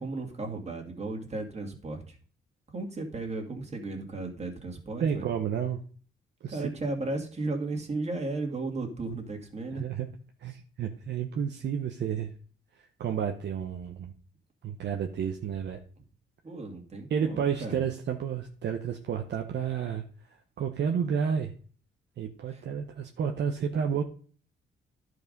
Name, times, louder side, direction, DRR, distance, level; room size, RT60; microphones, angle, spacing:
voice 1, 0.0-2.2 2.7-5.2 6.5-9.9 16.4-17.8 22.5-22.6, right 2 dB, 35° right, 2 dB, 2.3 m, -35 dB
voice 2, 5.0-5.8 6.4-6.6 9.7-10.1 10.4-12.3 13.0-14.1 14.6-15.8 17.1-20.0 20.6-21.5 22.2-24.0, right 7 dB, 60° right, 4 dB, 0.9 m, -31 dB
11.0 x 4.8 x 5.3 m, 0.43 s
cardioid pair, 90°, 20 cm